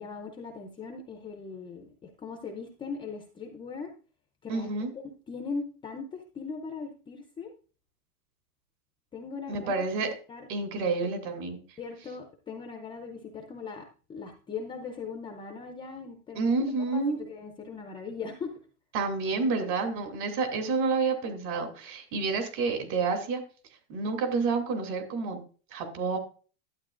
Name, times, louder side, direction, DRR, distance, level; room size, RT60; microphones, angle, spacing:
voice 1, 0.0-3.9 4.4-4.7 5.0-7.5 9.1-10.5 11.8-16.5 16.9-18.5, left 5 dB, 10° left, 4 dB, 0.5 m, -40 dB
voice 2, 4.5-4.9 9.5-10.1 10.5-11.6 16.3-17.2 18.9-23.4 23.9-25.4 25.7-26.2, right 4 dB, 45° right, 6 dB, 2.8 m, -29 dB
11.5 x 9.1 x 2.5 m, 0.39 s
supercardioid pair, 150°, 45 cm